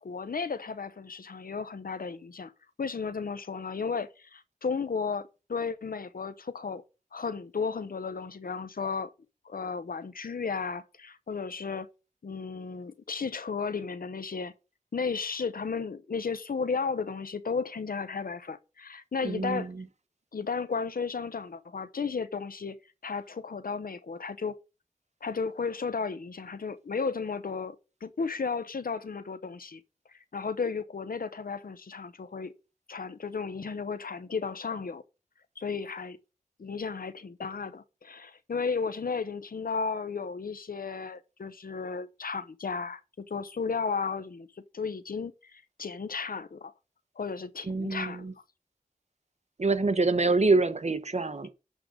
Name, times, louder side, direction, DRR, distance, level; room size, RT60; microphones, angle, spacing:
voice 1, 0.0-2.5 2.8-6.8 7.1-9.1 9.4-11.9 12.2-14.5 14.9-19.7 20.3-22.8 23.0-24.5 25.2-27.8 28.0-29.8 30.3-32.5 32.9-35.0 35.6-36.2 36.6-44.5 44.7-46.7 47.2-48.3, left 5 dB, 90° left, 0.8 m, -34 dB
voice 2, 19.2-19.9 47.7-48.3 49.6-51.5, right 3 dB, 50° right, 1.0 m, -26 dB
11.0 x 3.8 x 6.4 m
wide cardioid pair, 50°, 14 cm